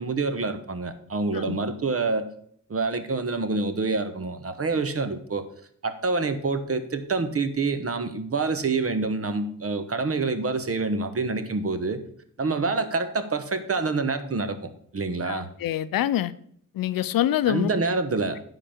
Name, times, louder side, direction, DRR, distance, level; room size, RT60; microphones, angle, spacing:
voice 1, 0.0-2.3 2.7-5.5 5.8-12.0 12.4-15.5 17.5-18.4, right 3 dB, 45° right, 1.1 m, -27 dB
voice 2, 15.2-16.3 16.7-17.7, left 12 dB, 90° left, 0.5 m, -25 dB
10.0 x 4.0 x 7.1 m
cardioid pair, 65°, 33 cm